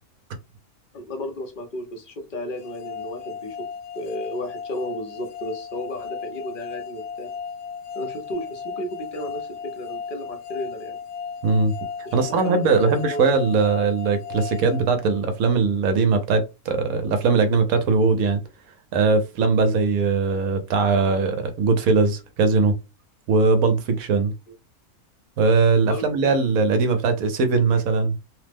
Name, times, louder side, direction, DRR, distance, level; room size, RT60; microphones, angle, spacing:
voice 1, 0.9-3.7 3.9-7.3 7.9-11.0 12.1-13.2 25.9-26.1, left 1 dB, 45° left, 0.7 m, -33 dB
sound 1, 2.6-15.6, left 6 dB, 65° left, 1.1 m, -36 dB
voice 2, 11.4-11.7 12.1-18.4 18.9-22.7 23.3-24.3 25.4-28.2, right 4 dB, 70° right, 1.0 m, -20 dB
3.1 x 2.0 x 3.3 m
omnidirectional pair, 1.6 m